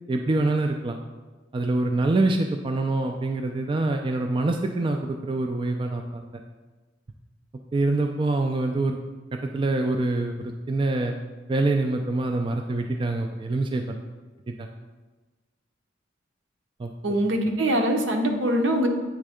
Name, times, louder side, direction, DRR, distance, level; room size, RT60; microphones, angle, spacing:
voice 1, 0.1-1.0 1.5-6.2 7.7-9.0 9.3-11.1 11.5-14.0 14.6-14.7 16.8-16.9, right 2 dB, 25° right, 3 dB, 0.3 m, -25 dB
voice 2, 17.0-18.9, right 1 dB, 70° right, 3 dB, 0.8 m, -23 dB
8.3 x 3.3 x 4.9 m, 1.3 s
head